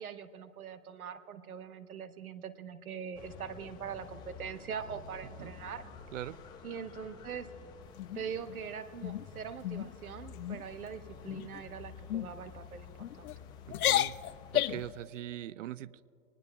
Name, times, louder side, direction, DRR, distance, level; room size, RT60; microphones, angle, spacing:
voice 1, 0.0-5.9 6.6-7.5 8.1-12.9 13.2-13.3, right 7 dB, 80° right, 10 dB, 1.2 m, -42 dB
sound 1, 3.1-14.9, left 6 dB, 10° left, 0.5 m, -51 dB
sound 2, 8.0-8.6 9.0-9.3 9.6-9.9 10.3-10.6 11.3-11.6 12.1-12.3 13.0-13.4 13.7-14.9, left 13 dB, 85° left, 0.5 m, -32 dB
voice 2, 13.7-14.2 14.5-16.1, right 13 dB, 60° right, 20 dB, 0.5 m, -41 dB
22.0 x 19.5 x 2.3 m, 2.8 s
hypercardioid pair, 135°, 42 cm